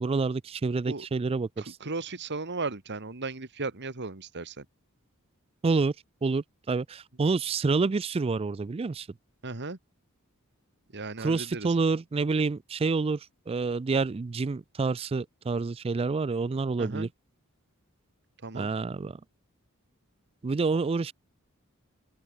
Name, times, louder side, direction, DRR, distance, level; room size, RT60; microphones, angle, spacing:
voice 1, 0.0-1.8 5.6-5.9 6.2-9.1 11.2-13.2 13.5-17.1 18.5-19.2 20.4-21.1, right 4 dB, 25° right, 0.4 m, -28 dB
voice 2, 1.6-4.7 9.4-9.8 10.9-11.8 16.8-17.1 18.4-18.7, right 3 dB, 55° right, 1.9 m, -36 dB
open air
head